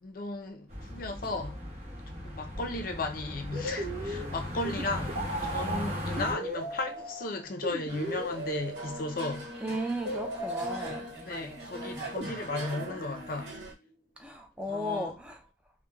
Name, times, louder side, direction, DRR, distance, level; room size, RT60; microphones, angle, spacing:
voice 1, 0.0-1.6 2.2-9.5 11.2-13.6 14.7-15.2, left 2 dB, 55° left, 0.5 m, -35 dB
sound 1, 0.7-6.3, equal, 40° right, 1.1 m, -37 dB
sound 2, 3.5-9.4 10.1-11.4 12.1-13.6, equal, 70° right, 0.6 m, -37 dB
sound 3, 7.9-13.7, right 1 dB, 85° right, 1.0 m, -42 dB
voice 2, 9.6-11.1 14.2-15.4, right 1 dB, 5° right, 0.3 m, -35 dB
3.1 x 2.1 x 2.2 m
head